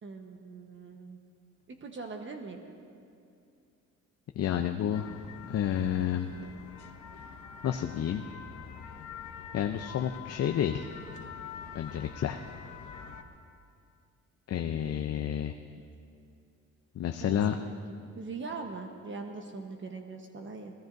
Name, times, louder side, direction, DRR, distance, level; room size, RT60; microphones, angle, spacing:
voice 1, 0.0-1.2 1.7-2.6 17.2-17.8 18.2-20.7, right 4 dB, 40° right, 4 dB, 1.2 m, -41 dB
voice 2, 4.4-5.1 5.5-6.3 7.6-8.2 9.5-10.9 11.7-12.4 14.5-15.5 16.9-17.6, left 10 dB, 55° left, 6 dB, 0.6 m, -30 dB
sound 1, 4.9-13.2, left 7 dB, 75° left, 1.0 m, -45 dB
23.5 x 18.5 x 2.7 m, 2.5 s
cardioid pair, 90°, 30 cm